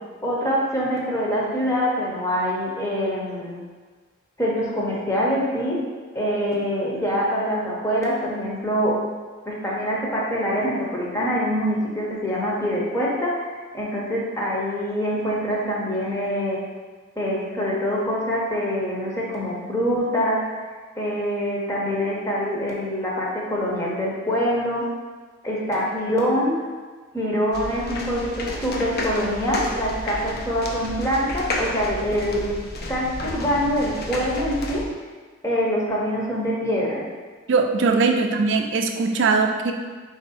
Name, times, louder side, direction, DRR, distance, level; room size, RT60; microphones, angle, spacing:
voice 1, 0.2-3.6 4.4-5.8 6.1-9.0 9.5-16.6 17.2-20.5 21.0-24.9 25.4-26.6 27.1-32.5 32.9-34.8 35.4-37.0 37.9-38.0, equal, 15° left, -5 dB, 0.8 m, -24 dB
sound 1, 27.5-34.9, left 1 dB, 50° left, 0.5 m, -31 dB
voice 2, 37.5-39.7, right 4 dB, 60° right, 4 dB, 0.4 m, -20 dB
4.2 x 2.7 x 4.1 m, 1.4 s
head